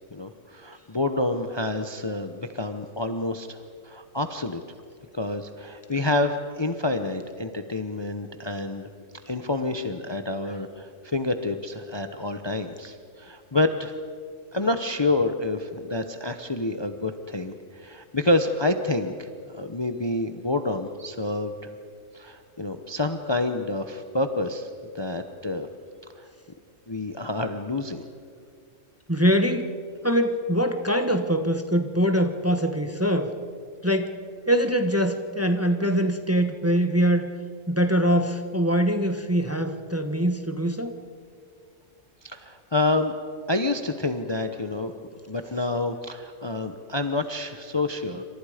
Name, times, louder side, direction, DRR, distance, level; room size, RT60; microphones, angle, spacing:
voice 1, 0.0-3.6 3.8-4.6 5.1-8.9 9.2-13.9 14.5-21.7 22.1-24.7 24.9-25.7 26.2-26.3 26.9-28.0 42.2-43.1 43.5-44.9 45.3-48.2, left 2 dB, 25° left, 8 dB, 0.8 m, -28 dB
voice 2, 29.1-29.7 30.0-33.3 33.8-34.2 34.5-37.3 37.7-40.9, equal, 10° right, 7 dB, 1.0 m, -23 dB
28.0 x 25.5 x 5.1 m, 2.2 s
omnidirectional pair, 1.3 m